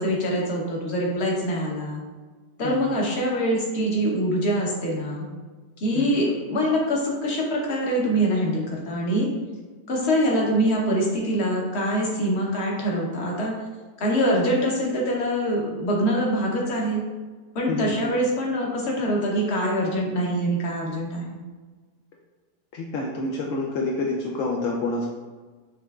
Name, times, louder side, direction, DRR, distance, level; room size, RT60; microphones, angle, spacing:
voice 1, 0.0-2.0 2.6-5.3 5.8-9.3 9.9-13.5 14.0-17.0 17.5-21.4, equal, 45° left, -2 dB, 1.0 m, -24 dB
voice 2, 2.6-3.0 5.9-6.2 17.7-18.1 22.7-25.1, left 2 dB, 70° left, -1 dB, 0.7 m, -28 dB
6.5 x 3.1 x 2.4 m, 1.4 s
omnidirectional pair, 1.8 m